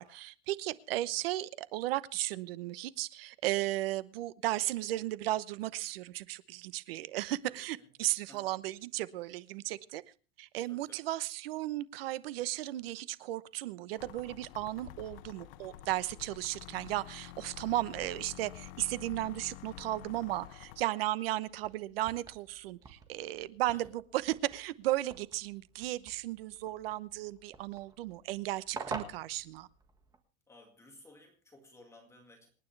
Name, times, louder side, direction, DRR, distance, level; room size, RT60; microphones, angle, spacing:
voice 1, 0.0-10.0 10.4-23.9 24.2-29.7, right 15 dB, 80° right, 1.0 m, -35 dB
voice 2, 7.4-7.9 8.3-8.5 10.7-11.1 23.7-23.9 30.5-32.5, left 1 dB, 10° left, 2.1 m, -57 dB
sound 1, 14.0-20.8, left 14 dB, 75° left, 0.8 m, -49 dB
sound 2, 21.5-30.2, right 4 dB, 15° right, 1.6 m, -48 dB
27.0 x 9.6 x 3.3 m
supercardioid pair, 165°, 29 cm